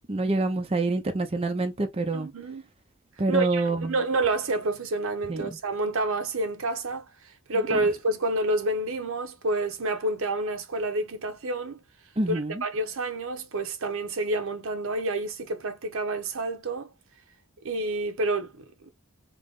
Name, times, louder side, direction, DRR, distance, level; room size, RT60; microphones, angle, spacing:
voice 1, 0.1-2.3 3.2-3.9 5.3-5.4 7.7-7.8 12.2-12.6, right 2 dB, 30° right, 0.6 m, -26 dB
voice 2, 2.1-2.6 3.3-7.1 7.5-11.8 12.3-16.9 17.6-18.9, right 2 dB, 65° right, 0.9 m, -29 dB
3.8 x 2.9 x 3.6 m
head